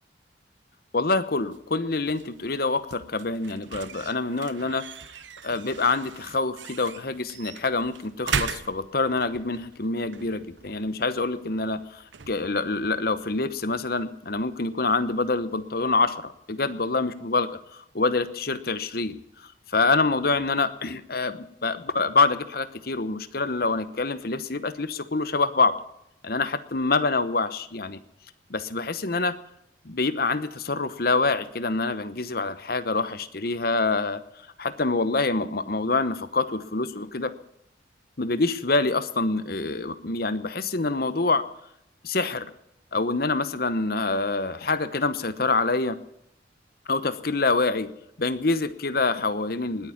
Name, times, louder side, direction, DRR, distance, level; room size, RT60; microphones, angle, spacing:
voice 1, 0.9-4.8 5.4-19.2 19.7-25.7 26.2-28.0 28.5-29.4 29.8-34.2 34.6-37.3 38.2-41.4 42.0-42.5 42.9-46.0 46.9-47.9 48.2-49.9, left 3 dB, 50° left, 13 dB, 1.0 m, -26 dB
sound 1, 1.4-14.2, right 6 dB, 75° right, 0.9 m, -39 dB
20.0 x 9.5 x 7.2 m, 0.80 s
head